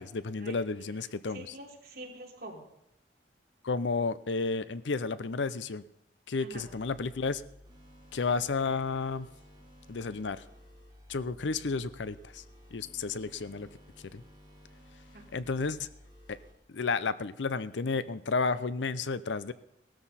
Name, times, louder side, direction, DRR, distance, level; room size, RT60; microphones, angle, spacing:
voice 1, 0.0-1.5 3.6-5.8 6.3-7.4 8.1-9.3 9.9-10.4 11.1-12.4 12.7-13.7 14.1-14.2 15.3-15.9 16.3-16.4 16.7-19.5, left 4 dB, 85° left, 15 dB, 0.6 m, -32 dB
voice 2, 1.3-2.6 6.4-6.7 15.1-15.5, right 1 dB, 55° right, -1 dB, 3.3 m, -46 dB
sound 1, 6.5-16.5, equal, 25° right, 3.2 m, -55 dB
18.0 x 13.0 x 4.2 m, 0.85 s
head